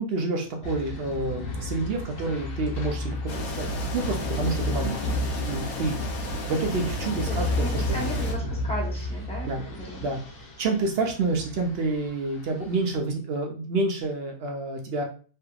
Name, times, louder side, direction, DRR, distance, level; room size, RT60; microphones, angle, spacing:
voice 1, 0.0-5.0 5.2-7.8 9.4-9.6 10.0-10.2 10.6-15.0, right 3 dB, 60° right, 2 dB, 0.6 m, -28 dB
sound 1, 0.6-12.9, left 1 dB, 70° left, 1.4 m, -32 dB
sound 2, 3.3-8.3, left 4 dB, 90° left, 1.1 m, -35 dB
voice 2, 4.8-5.2 7.2-10.1, right 1 dB, 5° left, -3 dB, 0.7 m, -36 dB
3.3 x 2.9 x 2.3 m, 0.39 s
omnidirectional pair, 1.5 m